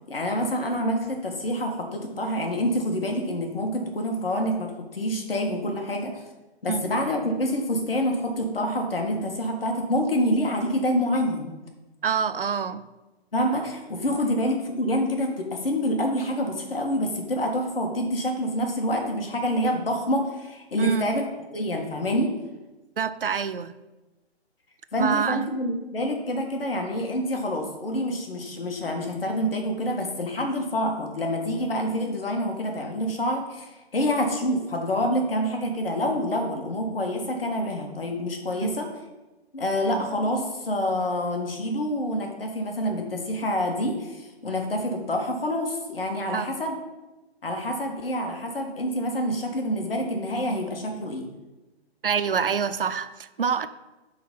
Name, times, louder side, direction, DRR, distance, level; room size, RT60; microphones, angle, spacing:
voice 1, 0.1-6.1 6.6-11.5 13.3-21.2 21.5-22.4 24.9-38.9 39.5-46.8 47.4-51.3, equal, 60° left, 1.8 m, -27 dB
voice 2, 12.0-12.9 20.8-21.1 23.0-23.8 25.0-25.5 38.6-38.8 46.3-46.5 52.0-53.7, right 7 dB, 60° right, 0.6 m, -26 dB
11.0 x 4.1 x 5.5 m
figure-of-eight pair, 135°, 32 cm